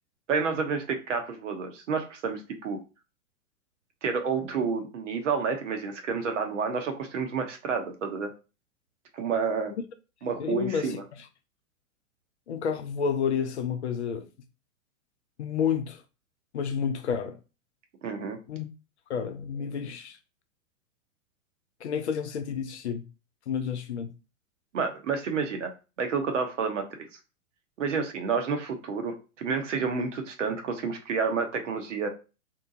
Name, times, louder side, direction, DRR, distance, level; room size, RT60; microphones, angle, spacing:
voice 1, 0.3-2.8 4.0-8.3 9.1-9.7 10.2-11.0 18.0-18.4 24.7-25.7 26.0-26.8 27.8-32.1, right 5 dB, 60° right, 0.8 m, -29 dB
voice 2, 10.4-11.0 12.5-14.3 15.4-16.0 16.5-17.4 18.5-18.7 19.1-20.2 21.8-23.0 23.5-24.1, left 7 dB, 55° left, 0.5 m, -30 dB
2.7 x 2.2 x 2.6 m
figure-of-eight pair, 105°, 42 cm